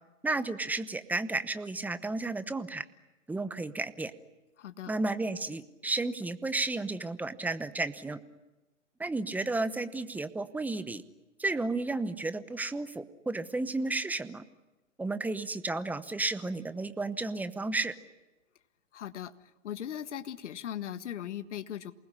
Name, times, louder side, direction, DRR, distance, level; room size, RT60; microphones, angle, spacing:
voice 1, 0.2-2.8 3.3-4.1 4.9-8.2 9.0-11.0 11.4-14.4 15.0-17.9, right 2 dB, 5° right, 13 dB, 0.9 m, -32 dB
voice 2, 4.6-4.9 18.9-19.3 19.6-21.9, left 10 dB, 65° left, 13 dB, 1.7 m, -38 dB
28.0 x 20.0 x 9.8 m, 1.1 s
hypercardioid pair, 125°, 39 cm